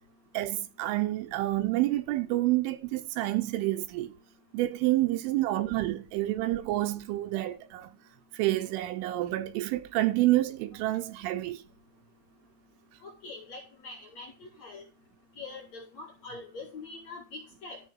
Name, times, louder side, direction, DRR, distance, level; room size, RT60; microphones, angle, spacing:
voice 1, 0.3-4.1 4.5-7.9 8.3-11.6, right 16 dB, 80° right, 3.3 m, -28 dB
voice 2, 13.0-14.8 15.4-17.8, left 3 dB, 50° left, 2.4 m, -44 dB
13.0 x 4.5 x 7.2 m
omnidirectional pair, 5.6 m